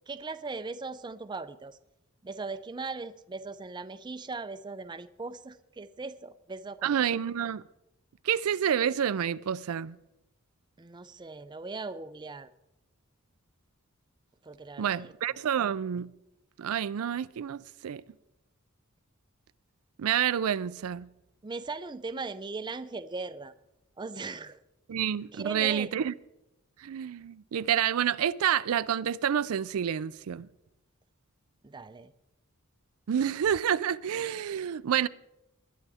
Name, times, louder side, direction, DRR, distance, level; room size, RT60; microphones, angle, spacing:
voice 1, 0.1-1.8 2.2-7.0 10.8-12.5 14.4-15.1 21.4-23.5 24.0-24.6 25.3-25.9 31.6-32.1, right 3 dB, 20° right, 0.5 m, -39 dB
voice 2, 6.8-7.6 8.2-10.0 14.8-16.1 16.6-18.0 20.0-21.1 24.9-26.1 26.8-30.5 33.1-35.1, right 9 dB, 90° right, 0.4 m, -28 dB
20.0 x 11.0 x 3.5 m
head